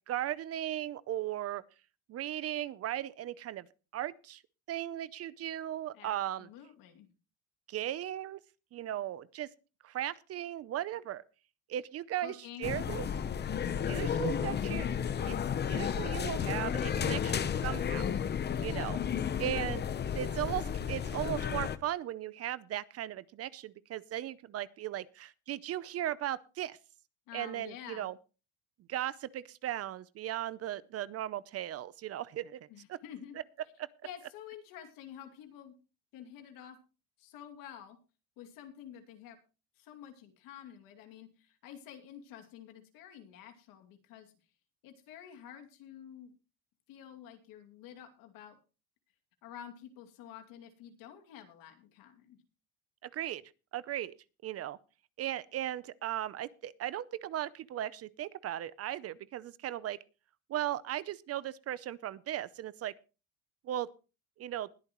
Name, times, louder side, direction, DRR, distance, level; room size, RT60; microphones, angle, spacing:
voice 1, 0.1-1.6 2.1-3.7 3.9-4.4 4.7-6.5 7.7-8.4 8.7-9.5 9.8-11.2 11.7-13.1 13.8-14.9 15.2-18.1 18.6-19.0 19.4-19.8 20.1-26.8 27.3-28.1 28.9-32.6 32.9-33.0 33.8-33.9 53.0-53.4 53.7-54.1 54.4-54.8 55.2-60.0 60.5-62.9 63.6-63.9 64.4-64.7, right 12 dB, 45° right, 0.6 m, -37 dB
voice 2, 5.9-7.1 12.2-12.7 18.5-19.0 27.3-28.1 32.7-33.4 34.0-35.7 36.1-36.8 37.2-38.0 38.4-39.4 39.8-44.3 44.8-46.3 46.9-48.6 49.4-52.4, left 9 dB, 70° left, 2.5 m, -49 dB
sound 1, 12.6-21.8, left 8 dB, 30° left, 0.8 m, -33 dB
20.5 x 8.8 x 3.0 m
cardioid pair, 115°, 35 cm